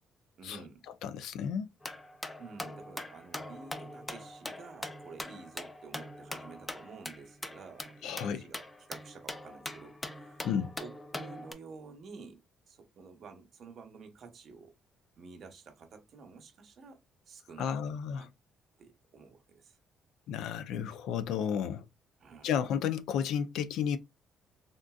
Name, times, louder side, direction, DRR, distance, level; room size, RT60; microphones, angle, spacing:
voice 1, 0.4-0.9 2.4-10.5 10.8-14.8 15.2-18.3 18.8-19.8 22.2-22.5, right 5 dB, 45° right, 0.8 m, -51 dB
voice 2, 1.0-1.7 8.0-8.4 10.4-10.7 17.6-18.3 20.3-21.8 22.4-24.0, left 8 dB, 80° left, 0.4 m, -32 dB
sound 1, 1.8-11.5, left 1 dB, 10° left, 0.3 m, -42 dB
3.7 x 2.5 x 2.3 m
cardioid pair, 160°, 0 cm